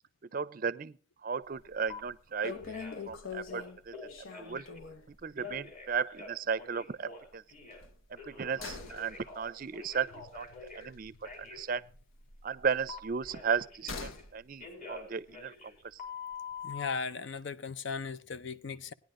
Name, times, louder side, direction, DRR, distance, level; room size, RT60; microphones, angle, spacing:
voice 1, 0.3-1.0 1.2-2.7 3.1-3.9 4.4-4.7 5.1-7.4 8.1-11.1 11.4-11.9 12.4-15.5 15.8-16.0, right 6 dB, 45° right, 0.5 m, -35 dB
sound 1, 1.5-1.8 2.1-2.2 2.4-5.1 5.5-5.7 6.0-6.1 7.7-11.6 11.9-14.3 14.6-14.7, left 4 dB, 80° left, 1.1 m, -44 dB
Telephone, 1.9-2.0 2.4-3.1 3.4-4.8 5.4-7.8 8.2-10.9 11.2-11.6 12.9-14.2 14.6-16.9, left 5 dB, 40° left, 4.2 m, -46 dB
voice 2, 16.6-18.9, left 5 dB, 65° left, 0.5 m, -37 dB
18.5 x 10.5 x 2.5 m
head